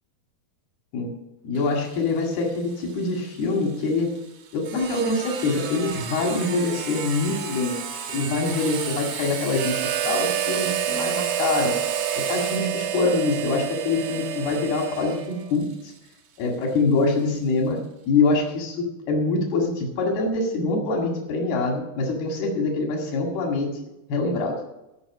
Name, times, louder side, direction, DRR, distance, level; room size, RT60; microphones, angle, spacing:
voice 1, 1.4-4.2 4.5-7.8 8.1-11.7 12.3-15.7 16.4-17.8 18.0-23.7 24.1-24.6, left 3 dB, 90° left, 1 dB, 4.0 m, -24 dB
Sawing, 1.6-17.0, right 6 dB, 60° right, 2.6 m, -36 dB
Harmonica, 9.5-15.5, right 11 dB, 75° right, 2.5 m, -28 dB
17.0 x 5.9 x 7.3 m, 0.93 s
omnidirectional pair, 4.3 m